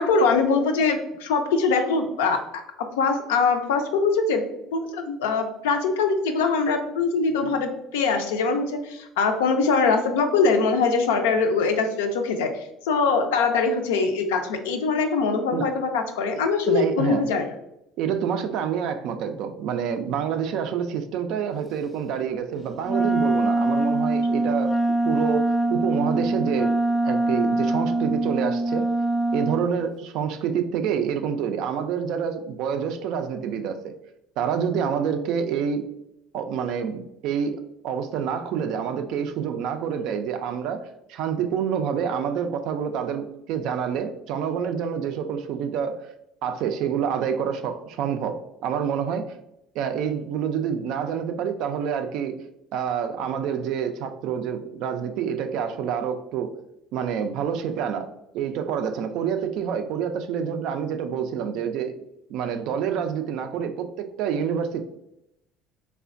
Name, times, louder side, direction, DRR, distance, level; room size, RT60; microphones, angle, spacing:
voice 1, 0.0-2.4 3.0-4.4 4.7-12.5 12.8-17.5, left 4 dB, 80° left, 6 dB, 0.3 m, -22 dB
voice 2, 16.3-17.3 18.0-24.7 25.0-26.7 27.0-28.9 29.3-33.9 34.4-35.9 36.3-46.0 46.4-49.2 49.7-52.4 52.7-56.5 56.9-58.1 58.3-61.9 62.3-64.8, right 7 dB, 65° right, 7 dB, 0.3 m, -27 dB
Wind instrument woodwind instrument, 22.8-29.7, right 2 dB, 25° left, 0.4 m, -23 dB
3.2 x 2.1 x 2.4 m, 0.82 s
hypercardioid pair, 70°, 0 cm